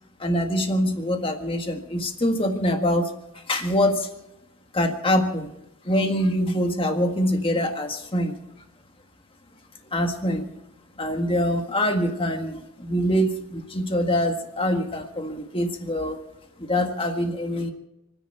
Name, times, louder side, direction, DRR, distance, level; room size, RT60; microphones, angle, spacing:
voice 1, 0.2-4.1 4.7-5.5 5.8-8.4 9.9-10.5 11.0-16.2 16.6-17.7, equal, 25° left, 4 dB, 1.7 m, -24 dB
30.0 x 10.0 x 4.5 m, 0.91 s
head